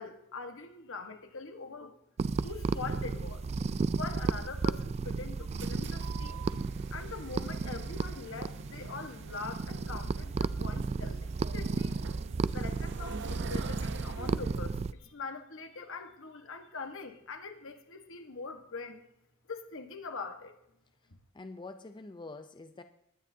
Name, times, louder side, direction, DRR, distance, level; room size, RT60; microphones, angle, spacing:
voice 1, 0.0-2.0 2.4-3.4 3.9-6.5 6.9-12.0 12.5-19.0 19.5-20.6, left 4 dB, 65° left, 6 dB, 1.4 m, -43 dB
sound 1, 2.2-14.9, right 4 dB, 30° right, 0.3 m, -34 dB
sound 2, 5.3-14.6, right 4 dB, 60° right, 0.8 m, -47 dB
voice 2, 21.0-22.8, left 3 dB, 20° left, 8 dB, 0.5 m, -46 dB
19.5 x 9.9 x 2.8 m, 0.79 s
head